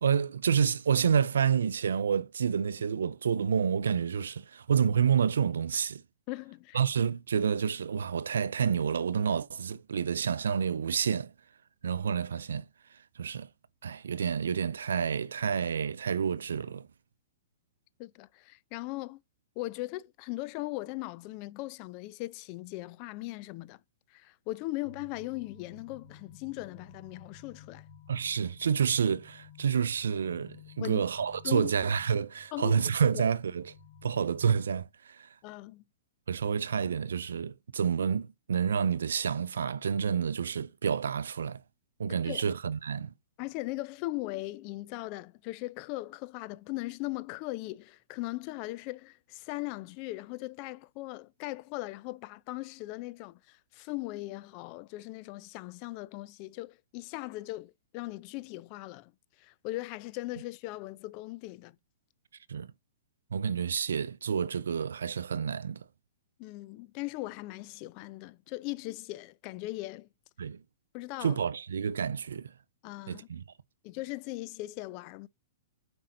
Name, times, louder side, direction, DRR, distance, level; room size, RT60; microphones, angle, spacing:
voice 1, 0.0-6.0 6.7-11.3 11.8-12.7 13.2-13.5 13.8-16.9 28.1-33.7 34.0-35.3 36.3-41.6 42.0-43.1 62.5-62.7 63.3-65.8 70.4-70.6 71.2-72.5 73.1-73.4, right 7 dB, 80° right, 0.5 m, -29 dB
voice 2, 6.3-6.8 18.0-19.2 19.6-23.8 24.1-27.8 30.8-31.1 31.4-31.7 32.5-33.2 35.4-35.8 42.1-42.5 43.4-59.1 59.4-61.8 66.4-70.1 70.9-71.4 72.8-73.3 73.8-75.3, left 19 dB, 40° left, 0.5 m, -39 dB
sound 1, 24.8-34.8, left 4 dB, 65° left, 3.1 m, -54 dB
7.4 x 5.3 x 3.8 m
hypercardioid pair, 125°, 0 cm